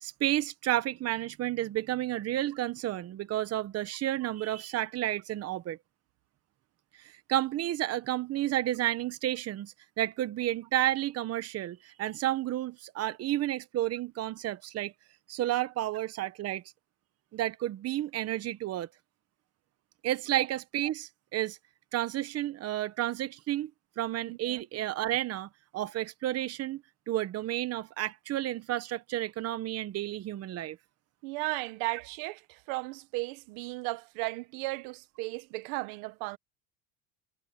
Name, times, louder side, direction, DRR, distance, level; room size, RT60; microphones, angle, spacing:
voice 1, 0.0-5.8 7.0-14.9 15.3-16.6 17.3-18.9 20.0-21.6 21.9-23.7 24.0-30.8, right 14 dB, 40° right, 1.2 m, -31 dB
voice 2, 24.3-24.6 31.2-36.4, right 23 dB, 70° right, 1.2 m, -35 dB
supercardioid pair, 130°, 39 cm